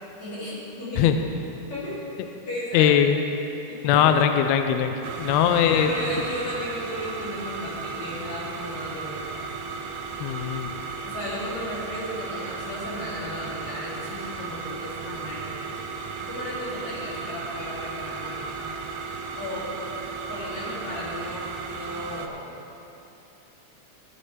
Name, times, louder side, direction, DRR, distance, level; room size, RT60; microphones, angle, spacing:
voice 1, 0.2-1.1 1.7-2.0 2.4-3.0 3.7-4.1 5.6-9.5 11.0-18.8 19.4-19.7 20.3-22.6, left 1 dB, 60° left, -8 dB, 3.9 m, -35 dB
voice 2, 2.7-3.2 3.8-5.9 10.2-10.7, left 9 dB, 85° left, 7 dB, 1.5 m, -20 dB
sound 1, 5.0-22.3, right 4 dB, 75° right, 1.9 m, -35 dB
13.5 x 11.0 x 3.3 m, 2.9 s
omnidirectional pair, 3.7 m